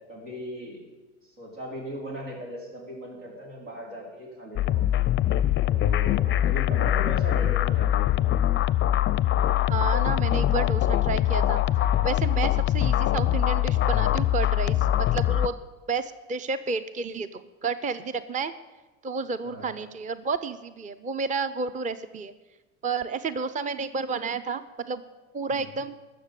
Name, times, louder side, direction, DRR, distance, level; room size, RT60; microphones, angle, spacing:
voice 1, 0.1-0.8 1.2-4.9 5.7-8.3 19.4-19.7 25.5-25.7, equal, 85° right, -2 dB, 4.6 m, -38 dB
sound 1, 4.6-15.5, left 12 dB, 30° left, 0.5 m, -23 dB
voice 2, 9.7-11.7 12.0-15.5 15.9-18.5 19.0-22.3 22.8-25.0 25.3-25.9, right 4 dB, 20° right, 13 dB, 0.6 m, -31 dB
12.5 x 6.8 x 8.3 m, 1.1 s
hypercardioid pair, 85°, 37 cm